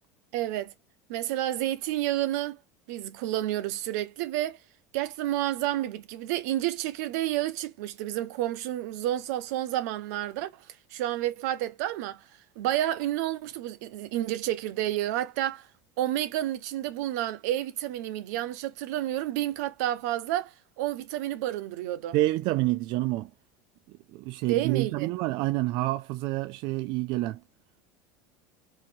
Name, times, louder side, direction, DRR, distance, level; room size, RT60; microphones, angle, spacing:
voice 1, 0.3-0.7 1.1-2.6 2.9-4.6 4.9-10.6 10.9-12.2 12.6-15.7 16.0-22.1 24.5-25.1, right 13 dB, 80° right, 0.8 m, -30 dB
voice 2, 22.1-23.3 24.1-27.4, right 18 dB, 60° right, 0.3 m, -28 dB
3.9 x 2.8 x 2.6 m
supercardioid pair, 115°, 9 cm